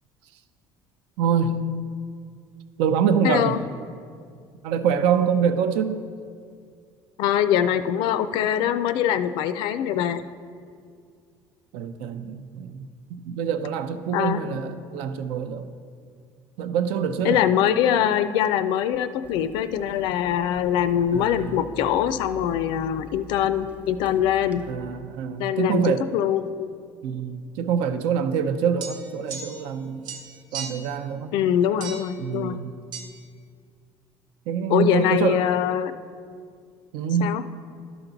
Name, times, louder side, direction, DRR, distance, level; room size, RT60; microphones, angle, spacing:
voice 1, 1.2-1.6 2.8-3.6 4.6-6.0 11.7-15.7 16.6-17.4 17.7-17.8 21.1-21.6 24.6-26.2 27.0-30.1 30.5-31.3 32.2-32.7 34.5-35.5 36.9-37.3, right 7 dB, 85° right, 9 dB, 0.6 m, -25 dB
voice 2, 3.2-3.6 7.2-10.2 14.1-14.4 17.2-24.6 25.4-26.7 31.3-32.6 34.7-35.9 37.2-37.4, left 10 dB, 65° left, 12 dB, 0.4 m, -23 dB
Water tap faucet / Sink (filling or washing), 19.2-24.7, right 1 dB, 15° right, 0.3 m, -46 dB
sound 1, 28.8-29.8 30.0-30.9 31.8-32.2 32.9-33.1, right 5 dB, 60° right, 1.0 m, -37 dB
11.5 x 5.9 x 3.9 m, 2.2 s
cardioid pair, 165°, 8 cm